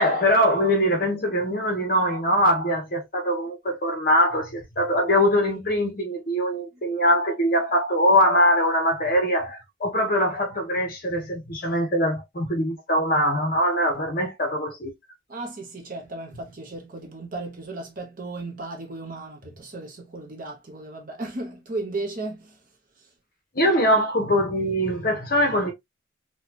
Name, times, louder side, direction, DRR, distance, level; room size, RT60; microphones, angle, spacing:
voice 1, 0.0-14.9 23.5-25.7, equal, 45° left, 1.1 m, -22 dB
voice 2, 15.3-22.6 23.0-23.1 23.6-23.7 24.8-25.0, right 2 dB, 40° right, 0.8 m, -35 dB
4.2 x 2.4 x 2.8 m
head